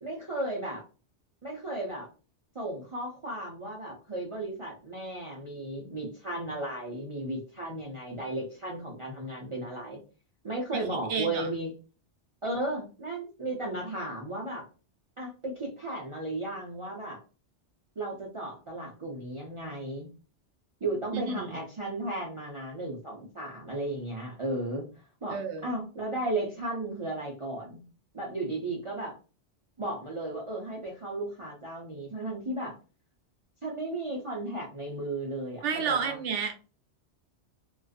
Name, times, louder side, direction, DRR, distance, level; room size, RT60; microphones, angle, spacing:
voice 1, 0.0-0.8 1.4-2.1 2.5-10.0 10.4-11.7 12.4-14.6 15.2-17.2 18.0-20.1 20.8-24.9 25.2-27.8 28.1-29.2 29.8-32.7 33.6-36.2, right 1 dB, 40° right, -3 dB, 0.5 m, -35 dB
voice 2, 11.1-11.5 21.1-21.6 25.3-25.7 35.6-36.5, right 6 dB, 85° right, 5 dB, 0.9 m, -31 dB
2.4 x 2.3 x 2.4 m, 0.34 s
omnidirectional pair, 1.2 m